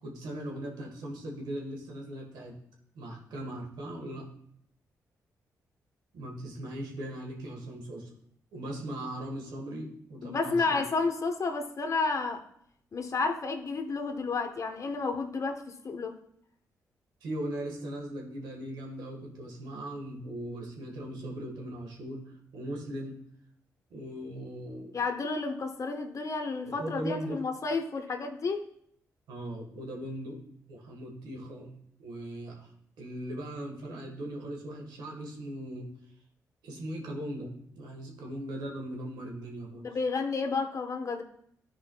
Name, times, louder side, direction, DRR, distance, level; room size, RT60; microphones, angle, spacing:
voice 1, 0.0-2.5 2.9-4.2 6.1-8.1 8.5-10.8 17.2-22.2 22.5-23.2 23.9-24.9 26.7-27.4 29.3-30.4 30.7-31.7 32.0-32.7 33.0-35.9 36.6-39.9, right 1 dB, 85° right, 0 dB, 1.5 m, -39 dB
voice 2, 10.2-12.4 12.9-16.2 24.9-28.6 39.8-41.2, left 4 dB, 50° left, 4 dB, 1.1 m, -31 dB
12.0 x 4.8 x 2.3 m, 0.69 s
supercardioid pair, 55°, 7 cm